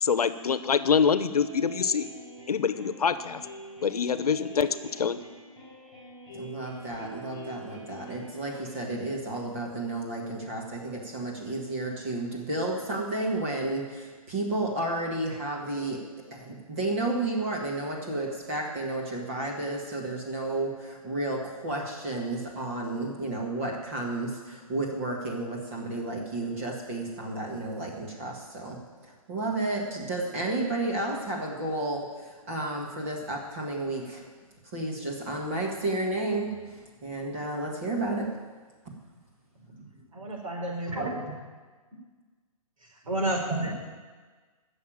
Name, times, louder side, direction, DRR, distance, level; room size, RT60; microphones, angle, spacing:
voice 1, 0.0-2.1 2.5-3.4 3.8-5.2, left 6 dB, 85° left, 13 dB, 1.0 m, -25 dB
sound 1, 1.3-8.7, right 2 dB, 5° right, 4.9 m, -45 dB
voice 2, 6.3-16.0 16.3-34.3 34.6-38.4 38.9-39.0, right 2 dB, 20° right, -1 dB, 2.0 m, -32 dB
voice 3, 40.1-41.4 43.0-43.7, right 1 dB, 65° right, -1 dB, 5.1 m, -30 dB
14.5 x 7.1 x 8.9 m, 1.4 s
hypercardioid pair, 180°, 19 cm